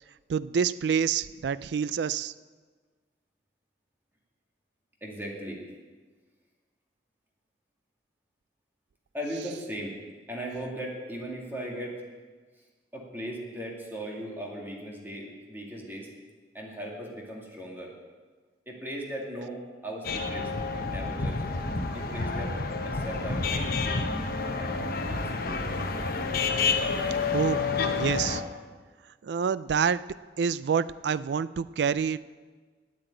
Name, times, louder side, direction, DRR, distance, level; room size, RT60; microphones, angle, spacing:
voice 1, 0.3-2.3 27.3-27.6 28.0-28.4 29.2-30.0 30.4-32.2, right 7 dB, 70° right, 17 dB, 0.4 m, -27 dB
voice 2, 5.0-5.6 9.1-10.0 10.3-12.0 12.9-16.1 16.5-17.9 18.7-21.4 21.9-22.5 22.8-23.8 24.6-25.6, equal, 10° right, -2 dB, 2.3 m, -38 dB
sound 1, 20.0-28.4, left 4 dB, 55° left, 0.9 m, -29 dB
9.8 x 8.7 x 9.1 m, 1.4 s
head